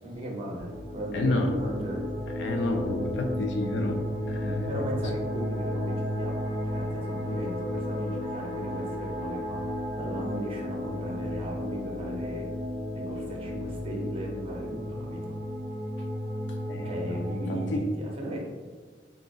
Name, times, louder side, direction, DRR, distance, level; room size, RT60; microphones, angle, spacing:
voice 1, 0.0-2.0 4.7-9.6 10.0-12.5 12.9-15.2 16.8-18.4, equal, 30° right, -2 dB, 0.5 m, -37 dB
sound 1, 0.6-17.8, left 1 dB, 25° left, 1.0 m, -33 dB
voice 2, 1.1-1.5 2.4-4.0 4.3-4.7 16.7-17.2 17.5-17.8, left 2 dB, 60° left, 3 dB, 0.4 m, -30 dB
3.7 x 2.5 x 2.3 m, 1.5 s
head